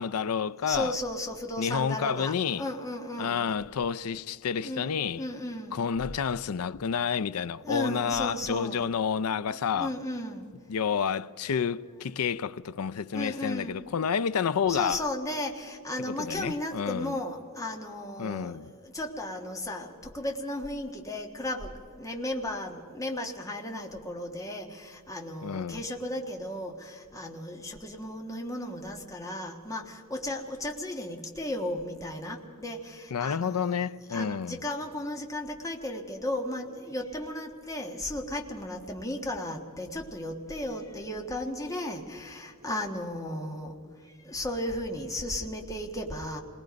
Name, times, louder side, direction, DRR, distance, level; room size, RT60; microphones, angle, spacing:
voice 1, 0.0-0.9 1.6-2.6 3.2-5.2 5.7-9.9 10.7-15.0 16.0-17.1 18.2-18.7 25.4-25.8 33.1-34.6, left 7 dB, 75° left, 0.5 m, -29 dB
voice 2, 0.6-3.4 4.6-5.8 7.6-8.9 9.5-10.5 13.1-13.7 14.7-33.7 34.1-43.7 44.0-46.4, left 1 dB, 15° left, 1.4 m, -35 dB
28.0 x 19.5 x 5.2 m
head